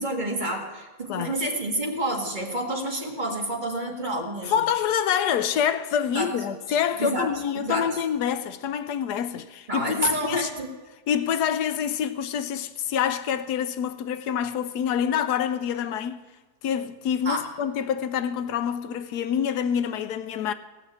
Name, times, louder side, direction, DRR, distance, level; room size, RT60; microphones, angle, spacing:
voice 1, 0.0-4.6 6.1-6.3 6.7-8.0 9.7-10.7 17.2-17.5, right 1 dB, 30° right, 1.9 m, -29 dB
voice 2, 4.5-10.5 11.1-16.2 16.6-20.5, left 8 dB, 80° left, 1.2 m, -26 dB
16.5 x 6.4 x 8.8 m
omnidirectional pair, 1.7 m